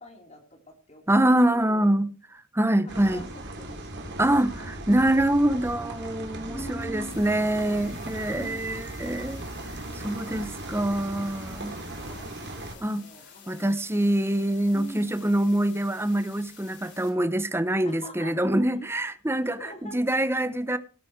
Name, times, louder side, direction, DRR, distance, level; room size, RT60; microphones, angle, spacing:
voice 1, 0.0-1.1 1.5-2.0 2.8-4.8 6.5-7.2 8.4-8.7 11.6-13.8 14.7-15.2 17.8-18.5 19.4-20.0, equal, 30° left, 3.7 m, -44 dB
voice 2, 1.1-2.1 2.5-3.3 4.2-9.4 9.9-11.7 12.8-13.0 13.5-20.8, right 1 dB, 10° right, 0.8 m, -25 dB
sound 1, 2.9-12.7, right 1 dB, 50° right, 3.2 m, -38 dB
sound 2, 7.1-17.1, left 7 dB, 50° left, 4.3 m, -51 dB
18.5 x 8.5 x 4.6 m
head